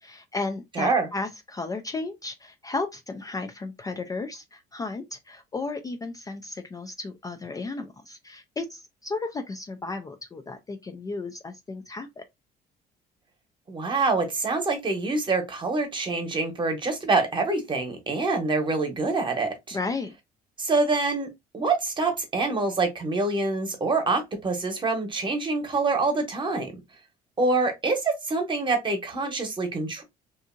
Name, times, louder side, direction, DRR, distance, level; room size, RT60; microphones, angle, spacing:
voice 1, 0.0-12.2 19.7-20.1, left 3 dB, 20° left, 0.3 m, -34 dB
voice 2, 0.8-1.1 13.7-19.8 20.6-21.3 21.5-26.8 27.4-30.0, right 3 dB, 30° right, 0.9 m, -26 dB
2.7 x 2.5 x 2.5 m
cardioid pair, 110°, 17 cm